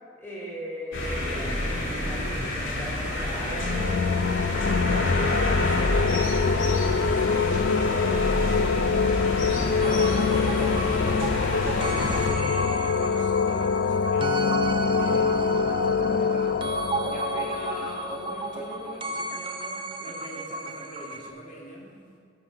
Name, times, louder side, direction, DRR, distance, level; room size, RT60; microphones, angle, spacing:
voice 1, 0.2-5.6, equal, 15° left, -6 dB, 2.7 m, -39 dB
sound 1, 0.9-12.3, left 1 dB, 85° left, 2.3 m, -28 dB
sound 2, 3.4-19.0, left 5 dB, 60° left, 0.3 m, -25 dB
voice 2, 5.6-22.1, equal, 40° left, -4 dB, 2.3 m, -42 dB
sound 3, 9.8-21.3, right 2 dB, 25° right, 0.6 m, -33 dB
9.8 x 5.9 x 6.8 m, 2.3 s
head